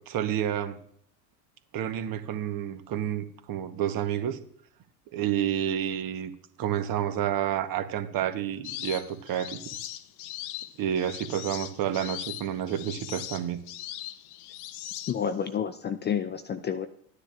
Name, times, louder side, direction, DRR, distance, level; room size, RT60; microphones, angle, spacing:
voice 1, 0.1-0.8 1.7-4.4 5.1-6.3 6.6-9.6 10.8-13.6, right 10 dB, 45° right, 9 dB, 1.1 m, -29 dB
sound 1, 8.6-15.5, left 13 dB, 50° left, 0.7 m, -40 dB
voice 2, 15.1-16.9, left 8 dB, 20° left, 11 dB, 0.4 m, -29 dB
13.0 x 9.9 x 2.5 m, 0.63 s
hypercardioid pair, 75°, 49 cm